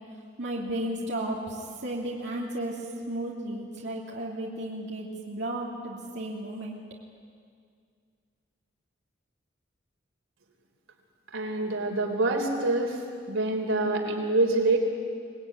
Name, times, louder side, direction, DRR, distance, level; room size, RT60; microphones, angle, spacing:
voice 1, 0.4-6.8, right 1 dB, 60° right, -3 dB, 2.9 m, -34 dB
voice 2, 11.3-13.0 13.3-14.8, right 2 dB, 85° right, 2 dB, 3.8 m, -26 dB
25.0 x 19.0 x 9.7 m, 2.1 s
head